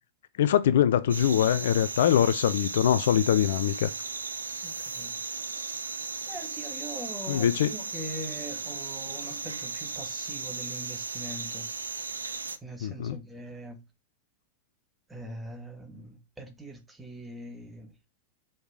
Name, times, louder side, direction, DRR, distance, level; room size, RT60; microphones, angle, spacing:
voice 1, 0.4-3.9 7.3-7.7 12.8-13.2, left 10 dB, 60° left, 0.4 m, -23 dB
sound 1, 1.1-12.6, right 4 dB, 75° right, 0.6 m, -36 dB
voice 2, 4.6-5.1 6.3-11.7 12.6-13.8 15.1-17.9, right 1 dB, 10° right, 1.6 m, -42 dB
4.9 x 4.3 x 4.8 m
figure-of-eight pair, 90°, 0 cm